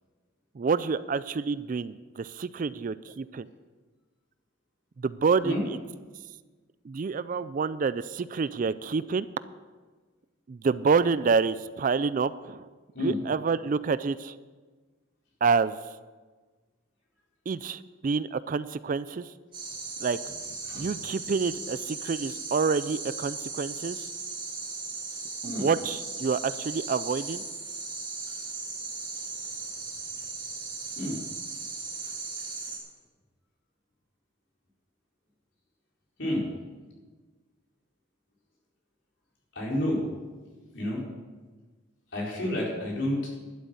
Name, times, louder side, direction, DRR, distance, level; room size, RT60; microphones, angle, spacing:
voice 1, 0.6-3.5 5.0-5.8 6.8-9.3 10.5-12.7 13.0-14.3 15.4-15.8 17.5-19.3 20.0-20.2 20.7-24.0 25.4-27.4, right 5 dB, 40° right, 16 dB, 0.4 m, -28 dB
sound 1, 19.5-32.8, right 4 dB, 25° right, 3.8 m, -37 dB
voice 2, 39.5-40.0 40.7-41.0 42.1-43.3, left 1 dB, 65° left, -4 dB, 4.5 m, -29 dB
12.0 x 8.2 x 7.8 m, 1.3 s
head